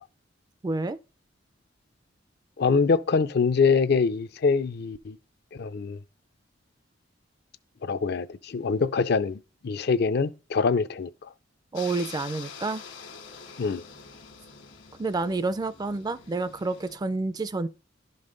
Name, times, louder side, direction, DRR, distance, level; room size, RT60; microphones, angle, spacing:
voice 1, 0.6-1.0 11.7-12.8 15.0-17.7, right 3 dB, 20° right, 0.3 m, -29 dB
voice 2, 2.6-5.2 5.5-6.0 7.8-11.1 13.6-13.8, left 5 dB, 55° left, 0.5 m, -24 dB
sound 1, 11.7-17.0, left 6 dB, 70° left, 1.6 m, -45 dB
11.5 x 5.3 x 3.9 m
head